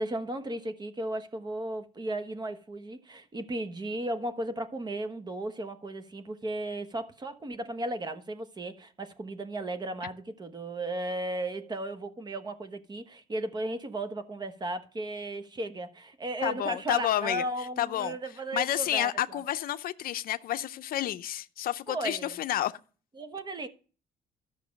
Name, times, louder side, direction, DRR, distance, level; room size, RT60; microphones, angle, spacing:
voice 1, 0.0-19.4 21.9-22.4 23.2-23.7, right 1 dB, 25° right, 1.1 m, -35 dB
voice 2, 16.4-17.4 17.8-18.2 18.5-22.8, left 12 dB, 60° left, 0.6 m, -30 dB
12.5 x 6.5 x 5.2 m
cardioid pair, 110°, 17 cm